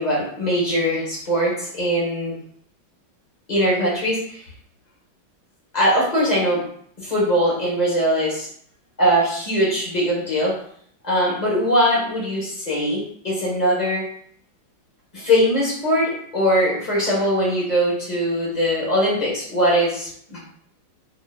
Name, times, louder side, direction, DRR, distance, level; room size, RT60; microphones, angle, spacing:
voice 1, 0.0-2.4 3.5-4.4 5.7-6.6 7.0-8.5 9.0-10.5 11.0-14.0 15.1-20.4, equal, 25° left, -5 dB, 1.4 m, -21 dB
4.6 x 3.0 x 2.5 m, 0.62 s
omnidirectional pair, 2.2 m